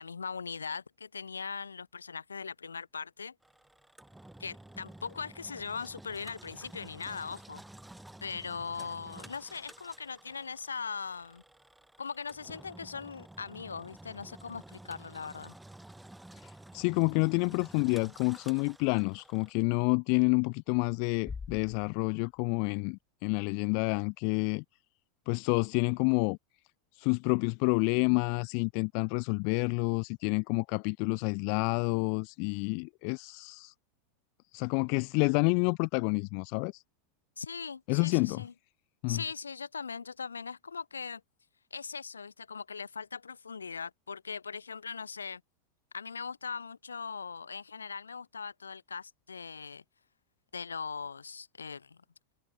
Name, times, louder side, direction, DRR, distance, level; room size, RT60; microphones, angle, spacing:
voice 1, 0.0-3.3 4.4-7.6 8.2-11.4 12.0-15.5 37.4-38.5 39.1-41.2 41.7-45.4 45.9-49.8 50.5-52.0, left 5 dB, 85° left, 1.4 m, -40 dB
Engine, 3.4-19.5, right 1 dB, 5° right, 1.5 m, -52 dB
voice 2, 16.4-24.6 25.3-26.4 27.0-33.7 34.5-36.8 37.9-38.4 39.0-39.2, left 40 dB or more, 55° left, 0.4 m, -29 dB
Bass drum, 21.3-23.0, left 5 dB, 20° left, 5.5 m, -45 dB
figure-of-eight pair, 85°, 0 cm